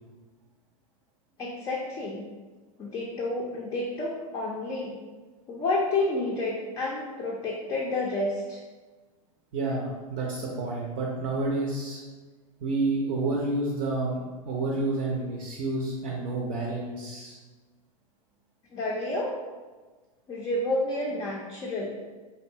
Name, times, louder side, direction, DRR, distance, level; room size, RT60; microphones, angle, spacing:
voice 1, 1.4-2.2 2.8-5.0 5.5-8.6 18.7-19.4 20.3-22.0, left 2 dB, 20° left, -3 dB, 0.4 m, -30 dB
voice 2, 9.5-12.0 12.6-17.4, right 2 dB, 40° right, -2 dB, 0.5 m, -29 dB
2.6 x 2.2 x 2.7 m, 1.3 s
hypercardioid pair, 100°, 19 cm